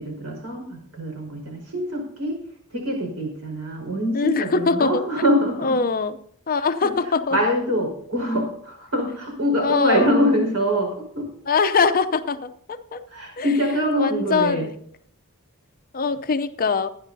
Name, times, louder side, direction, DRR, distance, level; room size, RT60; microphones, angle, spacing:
voice 1, 0.0-2.4 2.7-5.8 6.8-6.9 7.3-11.3 13.1-14.7, equal, 90° right, 4.9 m, -24 dB
voice 2, 4.1-5.0 5.6-6.2 6.5-7.4 9.6-10.1 11.5-13.0 13.4-13.5 14.0-14.7 15.9-16.9, left 4 dB, 40° left, 0.6 m, -22 dB
24.0 x 10.0 x 2.7 m
head